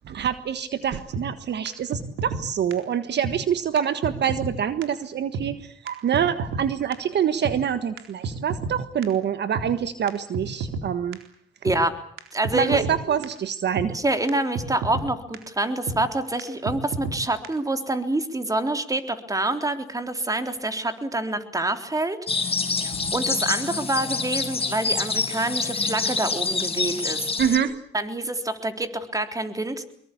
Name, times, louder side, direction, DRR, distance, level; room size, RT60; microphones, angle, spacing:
voice 1, 0.0-11.2 12.5-13.9 23.0-23.1 27.4-27.8, right 8 dB, 60° right, 12 dB, 1.5 m, -26 dB
sound 1, 1.1-1.2 1.6-1.7 1.9-2.4 2.7-2.8 3.2-3.3 3.8-3.9 4.0-4.5 4.8-4.9 5.3-5.5 5.9-6.0 6.1-6.6 6.9-7.0 7.4-7.6 8.0-8.7 9.0-9.1 9.5-9.7 10.1-10.2 10.3-10.8 11.1-11.2 11.7-11.8 12.2-12.3 12.4-13.0 13.2-13.3 13.8-13.9 14.3-14.4 14.5-15.1 15.3-15.4 15.9-16.0 16.4-16.5 16.7-17.2 17.4-17.5, right 4 dB, 85° right, 4.1 m, -30 dB
voice 2, 12.3-12.8 13.9-22.2 22.8-27.3 27.9-29.9, right 2 dB, 15° right, 8 dB, 3.6 m, -26 dB
sound 2, 22.3-27.6, left 4 dB, 30° left, 5.7 m, -26 dB
25.0 x 22.5 x 8.5 m, 0.65 s
cardioid pair, 90°, 20 cm